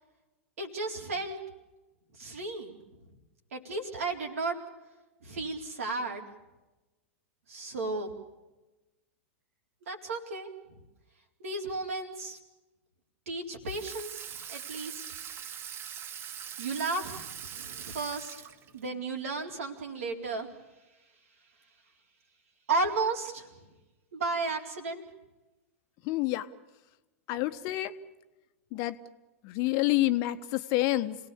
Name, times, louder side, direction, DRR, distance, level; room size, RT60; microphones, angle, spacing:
voice 1, 0.6-1.4 2.2-2.8 3.5-4.6 5.2-6.3 7.5-8.1 9.9-10.5 11.4-12.4 13.3-14.2 14.5-15.0 16.6-18.4 18.7-20.5 22.7-23.5 24.1-25.0, right 3 dB, 75° right, 2 dB, 4.0 m, -33 dB
Water tap faucet / Sink (filling or washing), 13.7-18.9, right 9 dB, 30° right, 0.9 m, -42 dB
voice 2, 26.0-26.5 27.3-27.9 28.7-29.0 29.4-31.2, left 16 dB, 45° left, 10 dB, 1.2 m, -28 dB
27.5 x 18.5 x 7.1 m, 1.1 s
hypercardioid pair, 100°, 8 cm